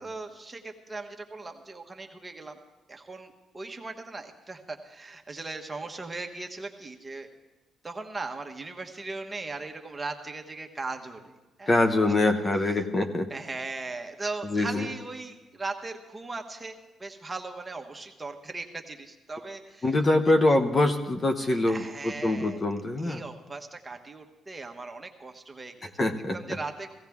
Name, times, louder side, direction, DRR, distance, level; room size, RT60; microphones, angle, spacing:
voice 1, 0.0-2.6 2.9-7.3 7.8-11.7 12.6-12.8 13.3-19.9 21.7-22.6 23.0-25.9 26.3-26.9, right 3 dB, 20° right, 3 dB, 1.3 m, -38 dB
voice 2, 11.7-13.3 14.4-14.9 19.8-23.2 26.0-26.4, left 2 dB, 30° left, 6 dB, 0.9 m, -24 dB
16.5 x 15.5 x 3.6 m, 1.1 s
cardioid pair, 90°, 0 cm